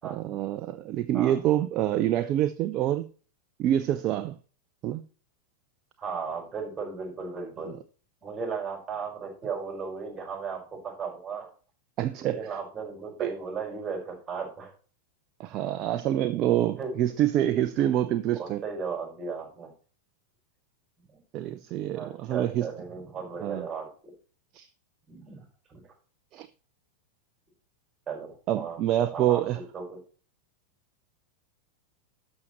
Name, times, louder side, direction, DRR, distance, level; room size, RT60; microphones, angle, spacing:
voice 1, 0.0-3.1 3.6-4.4 4.8-5.0 12.0-12.4 13.2-13.3 15.4-18.6 21.3-22.7 23.4-23.7 24.5-24.7 26.3-26.5 28.5-29.6, right 12 dB, 35° right, 0.5 m, -26 dB
voice 2, 6.0-7.8 8.2-11.5 12.2-14.7 16.8-16.9 17.8-17.9 18.4-19.7 21.9-23.9 25.1-25.4 25.7-25.8 28.1-28.8 29.1-30.0, right 5 dB, 15° right, 5.2 m, -36 dB
12.5 x 6.5 x 3.1 m
figure-of-eight pair, 90°, 0 cm